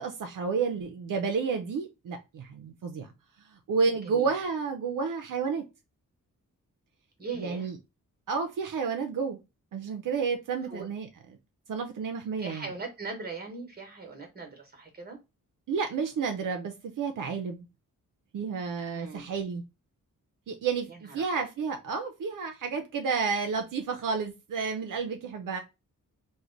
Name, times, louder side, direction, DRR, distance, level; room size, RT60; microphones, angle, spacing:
voice 1, 0.0-3.1 3.4-5.6 7.4-7.8 8.3-9.4 9.7-11.1 11.7-12.7 15.7-17.7 18.3-19.6 20.5-25.6, right 5 dB, 70° right, 0.5 m, -31 dB
voice 2, 4.0-4.3 7.2-7.7 10.7-10.9 12.4-15.2 18.9-19.2 20.9-21.4, right 4 dB, 30° right, 1.1 m, -40 dB
3.1 x 2.1 x 3.7 m
wide cardioid pair, 120°, 33 cm